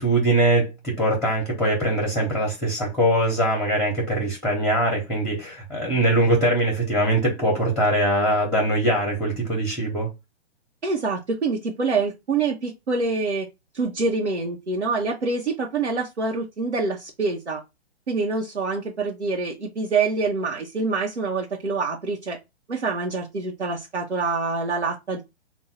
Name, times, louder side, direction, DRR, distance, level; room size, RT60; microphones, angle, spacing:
voice 1, 0.0-10.1, right 1 dB, ahead, 0.9 m, -22 dB
voice 2, 10.8-13.5 13.7-17.6 18.1-22.4 22.7-25.2, right 4 dB, 90° right, 1.0 m, -26 dB
3.6 x 2.3 x 4.1 m
figure-of-eight pair, 125°, 33 cm